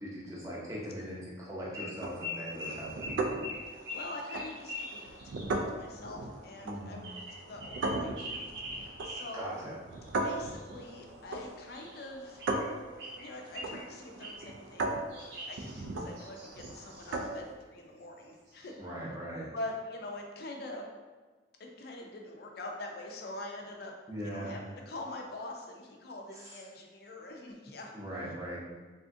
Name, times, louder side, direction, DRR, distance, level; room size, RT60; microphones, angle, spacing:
voice 1, 0.0-3.2 6.6-7.0 9.1-9.7 15.8-16.0 18.8-19.5 24.1-24.5 26.4-26.5 27.9-28.6, equal, 15° right, -6 dB, 0.6 m, -40 dB
sound 1, 1.7-1.9 2.2-5.5 7.0-9.3 9.9-10.9 11.7-12.7 13.0-13.8 14.2-14.5 15.1-17.3 18.2-18.3 18.5-18.8, left 1 dB, 70° right, 0.8 m, -43 dB
sound 2, 2.0-17.5, right 2 dB, 90° right, 0.3 m, -38 dB
voice 2, 3.6-8.4 8.7-9.6 10.2-12.4 13.2-15.0 15.4-19.1 19.5-20.8 21.6-23.9 24.2-27.9 28.2-28.3, left 2 dB, 55° left, 1 dB, 0.4 m, -44 dB
3.4 x 2.4 x 2.5 m, 1.3 s
head